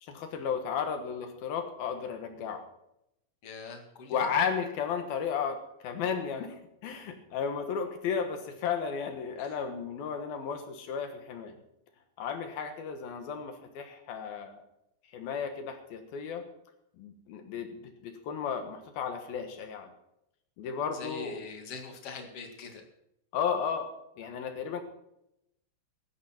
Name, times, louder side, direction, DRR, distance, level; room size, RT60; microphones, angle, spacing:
voice 1, 0.0-2.6 4.1-6.6 6.8-11.6 12.2-14.6 15.1-16.5 17.0-19.9 20.6-21.4 23.3-23.9 24.2-24.8, left 6 dB, 65° left, 7 dB, 2.9 m, -34 dB
voice 2, 3.4-4.3 9.4-9.5 20.9-22.8, left 4 dB, 45° left, 4 dB, 2.2 m, -43 dB
16.5 x 13.0 x 4.4 m, 0.81 s
omnidirectional pair, 5.1 m